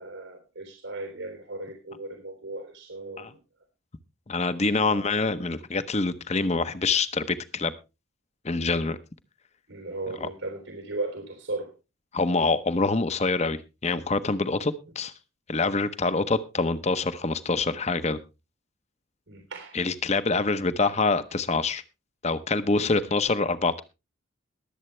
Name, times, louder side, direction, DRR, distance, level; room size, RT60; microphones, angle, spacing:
voice 1, 0.0-3.3 4.8-5.0 9.7-11.7 19.3-19.8, right 2 dB, 85° right, 3 dB, 3.4 m, -36 dB
voice 2, 4.3-7.7 8.4-9.0 10.2-10.3 12.1-15.1 15.5-18.2 19.7-21.8 22.2-23.8, left 3 dB, 35° left, 13 dB, 0.8 m, -25 dB
21.5 x 8.0 x 3.2 m, 0.27 s
head